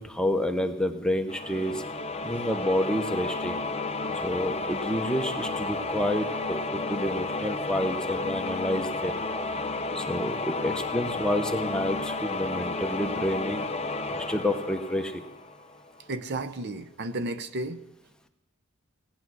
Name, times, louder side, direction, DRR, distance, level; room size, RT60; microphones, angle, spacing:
voice 1, 0.0-1.8 2.2-3.6 4.2-9.2 9.9-13.7 14.1-15.2, left 1 dB, 5° left, 5 dB, 0.9 m, -29 dB
sound 1, 1.3-15.9, left 3 dB, 25° left, 0.7 m, -32 dB
voice 2, 16.1-17.8, right 2 dB, 50° right, 10 dB, 0.7 m, -33 dB
18.0 x 10.0 x 6.2 m, 0.94 s
head